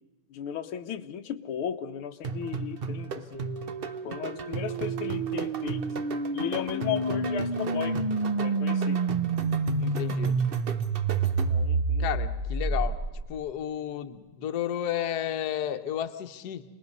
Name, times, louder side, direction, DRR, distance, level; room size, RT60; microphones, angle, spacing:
voice 1, 0.3-3.4 4.0-5.8 6.3-8.0 8.4-9.0 11.5-12.1, left 8 dB, 90° left, 7 dB, 1.9 m, -35 dB
sound 1, 2.2-11.8, right 5 dB, 85° right, 0.5 m, -36 dB
sound 2, 3.3-13.4, right 3 dB, 40° right, 0.6 m, -29 dB
voice 2, 9.8-10.4 12.0-13.0 13.3-16.6, left 10 dB, 55° left, 7 dB, 1.4 m, -32 dB
27.0 x 20.5 x 5.4 m, 1.2 s
omnidirectional pair, 2.3 m